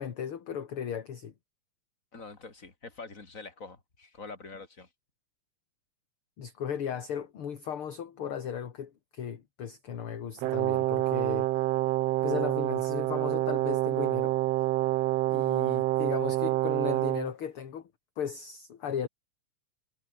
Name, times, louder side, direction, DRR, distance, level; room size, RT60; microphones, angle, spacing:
voice 1, 0.0-1.3 6.4-11.5 12.2-14.4 15.3-17.9 18.2-19.1, left 8 dB, 45° left, 2.5 m, -36 dB
voice 2, 2.1-4.9, left 4 dB, 25° left, 4.0 m, -45 dB
Brass instrument, 10.4-17.3, right 17 dB, 80° right, 1.4 m, -27 dB
omnidirectional pair, 3.6 m